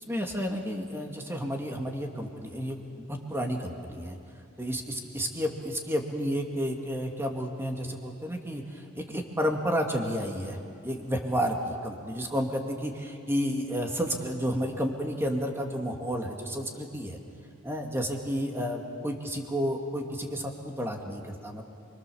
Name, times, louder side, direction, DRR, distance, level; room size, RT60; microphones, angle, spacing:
voice 1, 0.1-2.8 3.1-4.2 4.6-17.2 17.6-21.7, equal, 10° right, 2 dB, 2.3 m, -31 dB
28.5 x 23.5 x 7.1 m, 2.4 s
head